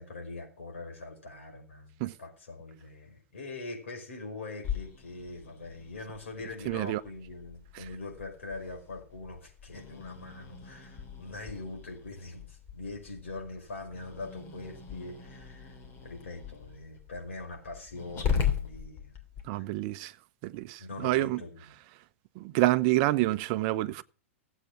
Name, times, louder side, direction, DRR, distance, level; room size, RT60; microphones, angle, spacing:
voice 1, 0.0-19.2 19.5-19.7 20.8-21.6, left 2 dB, 70° left, 5.2 m, -43 dB
Growling, 4.6-19.4, left 7 dB, 35° left, 2.9 m, -38 dB
voice 2, 6.6-7.0 7.7-7.8 19.5-20.1 20.4-21.4 22.3-24.0, right 17 dB, 45° right, 0.7 m, -28 dB
16.0 x 8.1 x 6.1 m
figure-of-eight pair, 100°, 7 cm